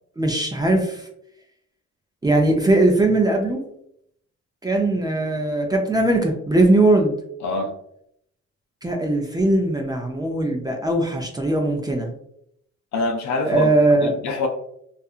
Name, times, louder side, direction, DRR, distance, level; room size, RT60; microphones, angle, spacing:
voice 1, 0.2-1.1 2.2-3.6 4.6-7.1 8.8-12.1 13.5-14.1, right 2 dB, 15° right, 1 dB, 0.4 m, -20 dB
voice 2, 7.4-7.7 12.9-13.7 14.0-14.5, left 3 dB, 65° left, 3 dB, 0.7 m, -24 dB
2.7 x 2.5 x 2.4 m, 0.73 s
cardioid pair, 90°, 30 cm